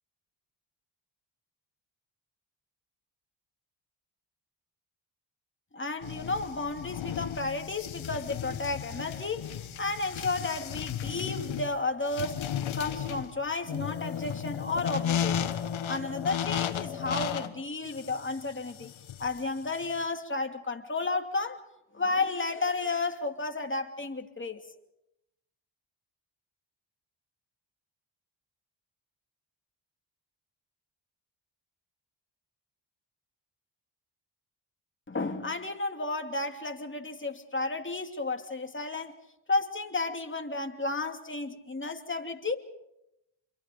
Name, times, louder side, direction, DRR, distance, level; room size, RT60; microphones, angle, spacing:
voice 1, 5.7-15.6 15.9-18.9 19.2-21.6 21.9-24.6 35.1-39.1 39.5-42.5, left 3 dB, 25° left, 4 dB, 2.7 m, -32 dB
sound 1, 6.0-20.0, left 9 dB, 75° left, 1.4 m, -34 dB
28.5 x 22.5 x 5.2 m, 0.87 s
cardioid pair, 65°, 47 cm